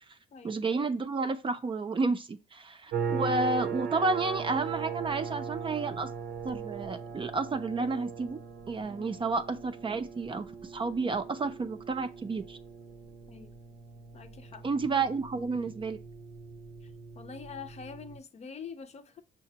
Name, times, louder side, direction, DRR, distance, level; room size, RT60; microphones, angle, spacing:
voice 1, 0.4-6.1 6.4-8.4 8.7-12.6 14.6-16.0, right 3 dB, 30° right, 0.5 m, -31 dB
sound 1, 2.9-18.2, right 6 dB, 70° right, 0.7 m, -39 dB
voice 2, 14.1-14.6 17.1-19.2, left 6 dB, 40° left, 0.6 m, -45 dB
5.7 x 2.1 x 2.7 m
supercardioid pair, 75°, 17 cm